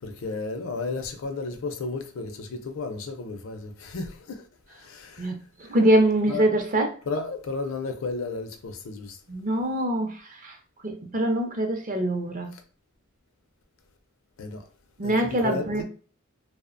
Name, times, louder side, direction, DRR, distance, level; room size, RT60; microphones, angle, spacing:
voice 1, 0.0-5.3 5.6-5.8 6.3-6.5 7.1-9.2 12.5-12.6 14.4-14.7 15.0-15.8, left 3 dB, 70° left, 0.5 m, -33 dB
voice 2, 5.7-6.9 9.3-10.1 10.4-10.5 10.8-12.5 15.0-15.8, right 1 dB, 40° right, 0.5 m, -23 dB
2.7 x 2.0 x 2.5 m
head